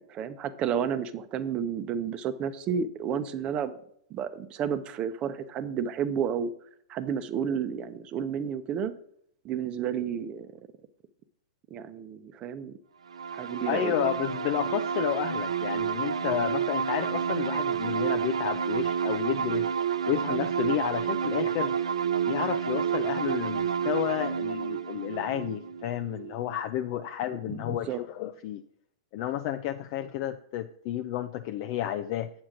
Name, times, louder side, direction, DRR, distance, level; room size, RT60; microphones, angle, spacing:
voice 1, 0.0-3.7 4.1-6.5 6.9-8.9 9.4-10.5 11.7-12.7 13.3-13.9 27.3-28.0, right 7 dB, 30° right, 11 dB, 0.8 m, -31 dB
sound 1, 13.1-26.6, right 7 dB, 80° right, 0.4 m, -30 dB
voice 2, 13.7-19.7 20.1-21.7 22.3-28.6 29.1-32.3, left 11 dB, 45° left, 7 dB, 0.5 m, -31 dB
7.8 x 7.2 x 3.9 m, 0.68 s
hypercardioid pair, 115°, 3 cm